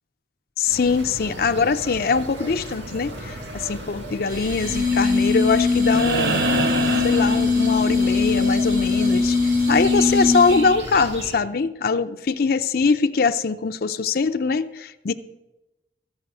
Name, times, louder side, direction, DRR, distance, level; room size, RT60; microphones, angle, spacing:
voice 1, 0.6-6.4 7.0-15.1, left 4 dB, 55° left, 8 dB, 0.5 m, -22 dB
sound 1, 0.6-11.4, right 1 dB, 90° right, 1.7 m, -36 dB
sound 2, 4.3-10.8, left 4 dB, 45° right, 2.9 m, -21 dB
sound 3, 5.8-8.1 10.0-10.1, right 3 dB, 65° right, 0.7 m, -25 dB
14.0 x 5.5 x 8.8 m, 1.0 s
head